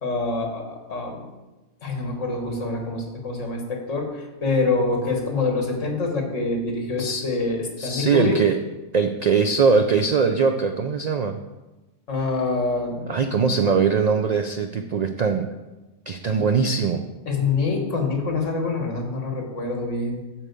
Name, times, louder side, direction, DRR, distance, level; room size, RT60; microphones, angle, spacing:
voice 1, 0.0-1.3 1.8-8.4 12.1-13.2 16.4-16.5 17.3-20.2, left 3 dB, 75° left, 2 dB, 1.8 m, -26 dB
voice 2, 7.8-8.6 8.9-11.4 13.0-15.5 16.1-17.0, right 5 dB, 75° right, 6 dB, 0.3 m, -21 dB
8.6 x 4.6 x 6.8 m, 1.1 s
omnidirectional pair, 1.3 m